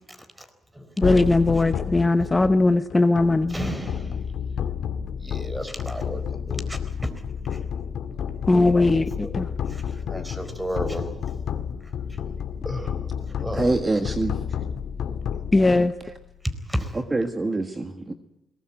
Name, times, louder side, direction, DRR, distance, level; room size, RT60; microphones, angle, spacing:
sound 1, 1.0-16.3, left 8 dB, 70° left, 2.0 m, -31 dB
voice 1, 1.0-3.6 8.5-9.5 15.5-15.9, left 2 dB, 20° left, 10 dB, 0.9 m, -19 dB
voice 2, 3.5-4.2 5.2-6.8 7.4-7.6 9.2-9.3 9.7-9.8 10.1-11.1 12.6-13.0 13.4-13.6 16.7-16.9, equal, 5° right, 10 dB, 4.2 m, -32 dB
voice 3, 13.5-14.4 16.0-16.1 16.9-18.1, right 2 dB, 25° right, 7 dB, 1.6 m, -25 dB
21.5 x 20.0 x 9.1 m, 0.88 s
cardioid pair, 90°, 0 cm